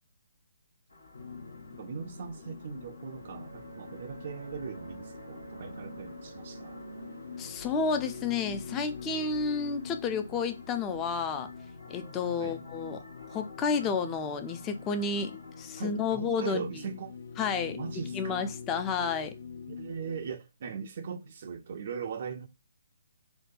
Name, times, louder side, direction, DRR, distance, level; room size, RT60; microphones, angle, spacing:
sound 1, 0.9-16.1, left 4 dB, 85° left, 1.1 m, -51 dB
sound 2, 1.1-20.3, left 5 dB, 65° left, 0.7 m, -45 dB
voice 1, 1.8-6.8 12.4-12.6 15.8-17.2 17.8-18.5 19.7-22.5, right 6 dB, 45° right, 0.3 m, -39 dB
sound 3, 2.6-11.2, right 3 dB, 85° right, 0.8 m, -50 dB
voice 2, 7.4-11.5 11.9-13.0 13.3-15.3 15.6-16.7 17.4-17.8 18.1-19.3, left 5 dB, 20° left, 0.4 m, -31 dB
3.7 x 2.2 x 2.5 m
figure-of-eight pair, 145°, 0 cm